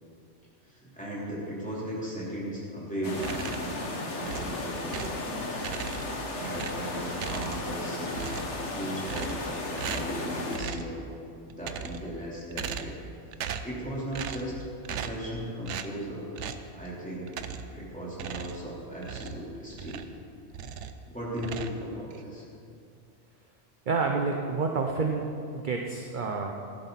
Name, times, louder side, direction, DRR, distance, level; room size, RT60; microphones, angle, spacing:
voice 1, 0.6-5.2 5.9-8.3 8.7-11.0 11.4-13.0 13.3-14.6 14.9-16.3 16.7-17.3 17.7-20.1 21.1-22.4, equal, 5° left, -7 dB, 3.4 m, -37 dB
sound 1, 3.0-10.6, left 2 dB, 70° left, 1.6 m, -35 dB
sound 2, 3.2-3.8 4.2-5.2 5.6-6.2 6.5-7.8 8.1-8.6 9.1-9.5 9.8-10.2 10.5-10.9 11.5-12.1 12.5-13.1 13.3-13.8 14.1-14.5 14.8-15.3 15.7-15.9 16.4-16.7 17.3-17.8 18.1-20.2 20.5-21.0 21.4-22.2, right 7 dB, 75° right, 1.0 m, -38 dB
voice 2, 23.9-25.2 25.5-26.5, right 4 dB, 45° right, 2 dB, 0.8 m, -28 dB
15.0 x 11.5 x 4.1 m, 2.4 s
omnidirectional pair, 1.2 m